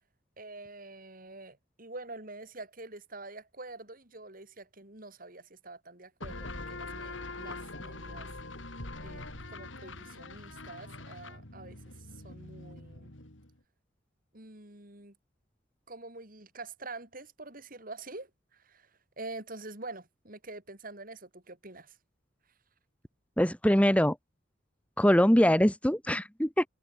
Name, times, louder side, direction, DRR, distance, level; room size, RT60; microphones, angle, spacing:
voice 1, 0.4-8.3 9.0-11.8 12.1-13.1 14.3-15.2 15.9-18.9 19.2-22.0, right 2 dB, 45° right, 5.3 m, -46 dB
sound 1, 6.2-13.6, left 2 dB, 85° left, 5.1 m, -43 dB
voice 2, 23.4-24.2 25.0-26.7, equal, 5° left, 2.1 m, -23 dB
head